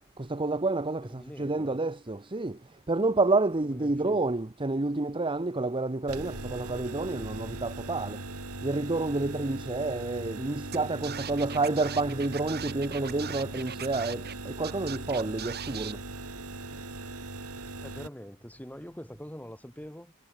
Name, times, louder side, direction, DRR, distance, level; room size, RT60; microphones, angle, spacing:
voice 1, 0.2-2.6 2.9-8.2 8.6-16.0, right 2 dB, 25° right, 0.9 m, -29 dB
voice 2, 1.0-1.8 3.6-4.2 11.3-11.6 17.8-20.1, equal, 5° left, 3.2 m, -45 dB
sound 1, 6.1-18.1, right 2 dB, 75° right, 4.6 m, -40 dB
Scratching (performance technique), 10.7-10.8 11.0-14.3 14.6-15.9, right 9 dB, 45° right, 2.1 m, -39 dB
head